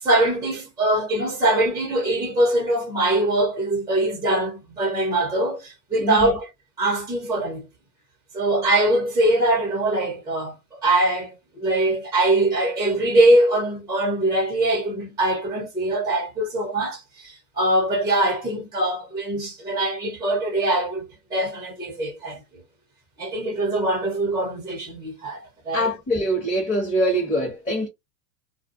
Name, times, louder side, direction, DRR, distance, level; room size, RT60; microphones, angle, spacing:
voice 1, 0.0-6.5 6.8-7.6 8.3-10.5 10.8-21.0 21.3-22.4 23.2-25.9, right 1 dB, 10° right, 0.9 m, -22 dB
voice 2, 6.0-6.4 25.7-27.9, equal, 15° left, 1.3 m, -23 dB
2.5 x 2.3 x 2.5 m
hypercardioid pair, 125°, 49 cm